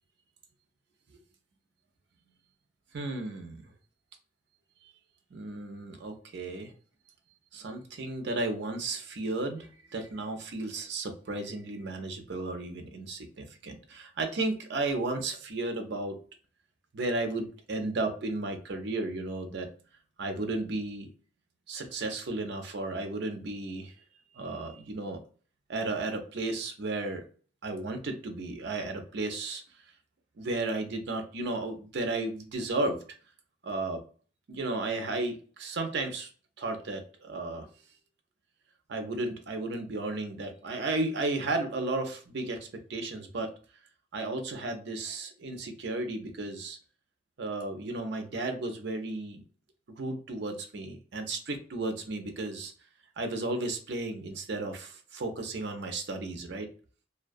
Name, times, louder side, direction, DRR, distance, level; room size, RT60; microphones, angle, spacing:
voice 1, 2.9-3.6 5.3-6.7 7.5-16.2 16.9-19.7 20.2-21.1 21.7-23.9 24.3-25.2 25.7-27.2 27.6-29.6 30.4-33.0 33.6-34.0 34.5-36.3 36.6-37.7 38.9-43.5 44.1-46.8 47.4-49.4 50.0-52.7 53.2-56.7, right 2 dB, 60° right, 5 dB, 0.5 m, -34 dB
2.2 x 2.2 x 2.5 m, 0.40 s
head